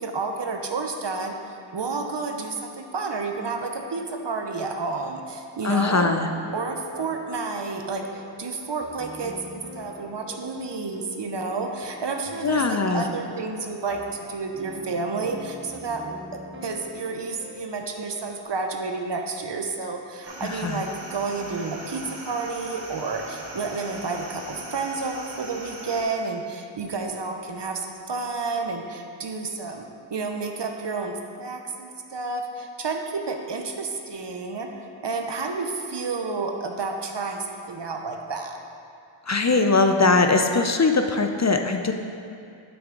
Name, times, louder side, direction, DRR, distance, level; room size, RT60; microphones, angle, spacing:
voice 1, 0.0-1.4 1.7-6.2 6.5-38.6, right 4 dB, 65° right, 3 dB, 0.8 m, -30 dB
voice 2, 5.6-6.3 12.4-13.1 20.4-20.8 39.3-41.9, left 3 dB, 35° left, 5 dB, 0.5 m, -21 dB
sound 1, 5.8-18.4, right 1 dB, 25° right, 0.7 m, -43 dB
sound 2, 20.2-26.0, right 1 dB, 90° right, 1.2 m, -40 dB
8.7 x 6.0 x 3.9 m, 2.4 s
wide cardioid pair, 40°, 47 cm